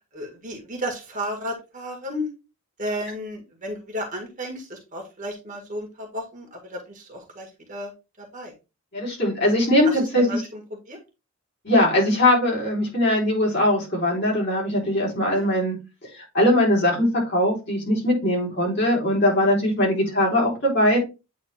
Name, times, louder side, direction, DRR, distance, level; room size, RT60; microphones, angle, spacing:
voice 1, 0.1-2.3 2.8-7.9 8.2-8.5 9.8-10.6 10.9-11.0 15.3-15.5, equal, 35° right, 3 dB, 1.8 m, -33 dB
voice 2, 8.9-10.4 11.6-15.8 16.1-21.0, left 1 dB, 45° left, -3 dB, 3.9 m, -21 dB
8.8 x 3.8 x 3.5 m, 0.27 s
head